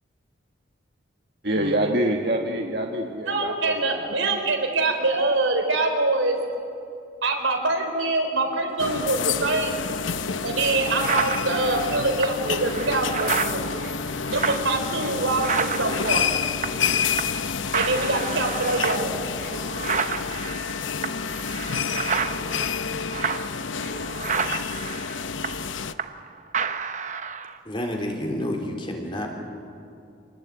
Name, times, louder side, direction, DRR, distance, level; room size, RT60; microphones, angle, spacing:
voice 1, 1.4-4.2, right 1 dB, 55° right, 1 dB, 1.7 m, -26 dB
voice 2, 3.3-6.4 7.2-9.7 10.4-13.7 14.3-16.3 17.7-19.3, right 2 dB, 85° right, 3 dB, 4.2 m, -24 dB
sound 1, 8.8-25.9, left 6 dB, 80° left, 0.8 m, -29 dB
sound 2, 10.1-10.2 10.6-16.9 17.2-17.5 17.7-26.3 26.5-27.6, right 6 dB, 40° right, 0.8 m, -30 dB
voice 3, 27.6-29.3, left 1 dB, 25° left, 1 dB, 3.4 m, -29 dB
27.0 x 19.0 x 9.1 m, 2.6 s
head